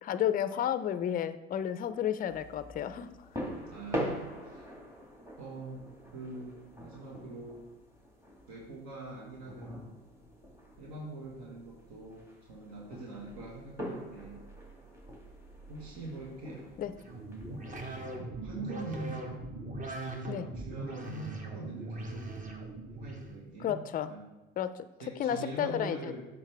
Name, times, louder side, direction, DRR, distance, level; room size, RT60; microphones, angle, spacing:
voice 1, 0.0-3.1 16.8-16.9 20.3-20.4 23.6-24.1 24.6-24.9 25.2-26.1, left 10 dB, 30° left, 13 dB, 0.4 m, -32 dB
sound 1, 2.3-18.2, equal, 10° right, 1.9 m, -44 dB
voice 2, 3.7-4.6 5.4-5.8 6.1-7.6 8.5-10.0 10.8-14.4 15.7-16.7 18.3-19.3 20.0-22.3 22.8-24.2 25.0-26.2, right 2 dB, 70° right, -3 dB, 1.6 m, -43 dB
sound 2, 17.0-23.3, right 2 dB, 25° right, 1.1 m, -40 dB
7.2 x 5.1 x 3.4 m, 1.1 s
supercardioid pair, 80°, 30 cm